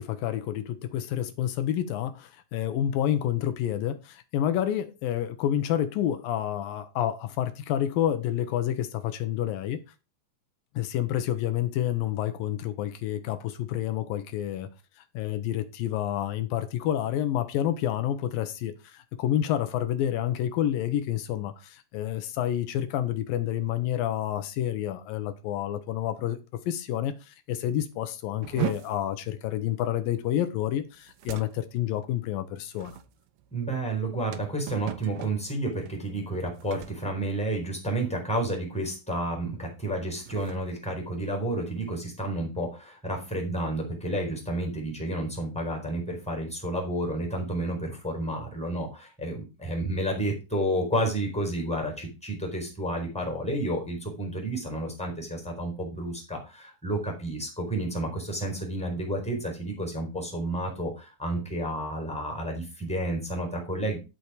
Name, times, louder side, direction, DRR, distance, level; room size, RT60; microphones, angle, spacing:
voice 1, 0.0-9.8 10.8-14.7 15.1-26.4 26.7-33.0, left 11 dB, 85° left, 2.7 m, -29 dB
sound 1, 28.4-38.1 38.3-38.7 39.1-39.3 39.9-41.8, right 15 dB, 85° right, 2.6 m, -40 dB
voice 2, 33.5-64.0, right 1 dB, ahead, 3.9 m, -31 dB
12.5 x 6.0 x 5.0 m
omnidirectional pair, 4.1 m